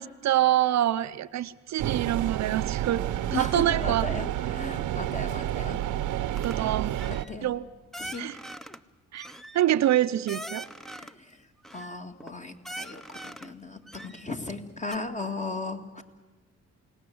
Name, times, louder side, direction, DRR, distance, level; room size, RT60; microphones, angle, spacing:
voice 1, 0.0-4.1 6.4-6.9 7.4-7.6 8.2-8.4 9.1-9.3 9.5-10.7, right 13 dB, 65° right, 12 dB, 0.7 m, -26 dB
sound 1, 1.8-7.2, right 12 dB, 85° right, 0.9 m, -30 dB
voice 2, 3.3-5.8 6.5-6.7 7.3-7.5 8.0-8.3 10.8-11.4 11.7-16.0, left 2 dB, 25° left, 5 dB, 2.2 m, -36 dB
sound 2, 6.4-6.6 6.9-7.3 7.9-8.8 9.1-11.2 11.6-12.3 12.6-13.5 13.9-14.6 14.9-15.0, right 1 dB, ahead, 0.9 m, -42 dB
28.5 x 18.0 x 7.9 m, 1.3 s
cardioid pair, 90°, 30 cm